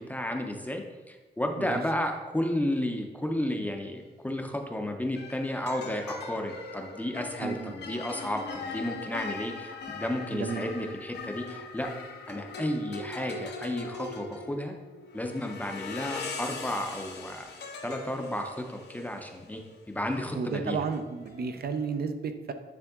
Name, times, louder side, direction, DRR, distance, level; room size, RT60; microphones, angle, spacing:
voice 1, 0.0-11.9 12.3-14.7 15.1-17.5 17.8-19.6 19.9-20.8, left 1 dB, 10° left, 4 dB, 0.6 m, -32 dB
sound 1, 4.0-4.3 5.2-21.9, left 4 dB, 75° left, 0.8 m, -41 dB
voice 2, 7.4-7.7 10.3-10.7 20.3-22.5, right 5 dB, 60° right, 8 dB, 0.6 m, -32 dB
9.5 x 3.5 x 3.6 m, 1.3 s
wide cardioid pair, 150°, 18 cm